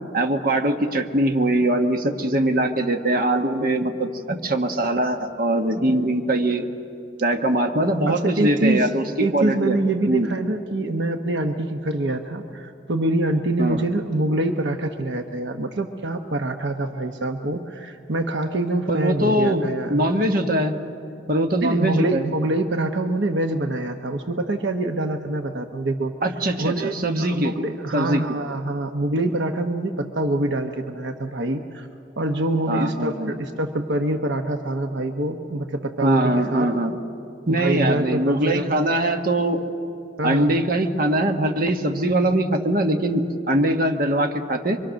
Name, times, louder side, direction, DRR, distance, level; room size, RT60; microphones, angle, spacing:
voice 1, 0.1-6.7 7.2-9.8 10.1-10.3 13.6-13.9 18.9-19.6 19.9-20.8 21.3-22.2 26.2-27.5 27.9-28.2 32.7-33.3 36.0-37.0 37.5-39.6 40.2-44.8, right 1 dB, 55° right, 4 dB, 1.4 m, -22 dB
voice 2, 8.1-8.9 9.2-20.1 21.6-26.1 26.6-31.9 32.2-36.7 37.5-38.9 40.2-40.6, right 2 dB, 80° right, 5 dB, 1.0 m, -25 dB
25.0 x 23.5 x 6.4 m, 2.6 s
head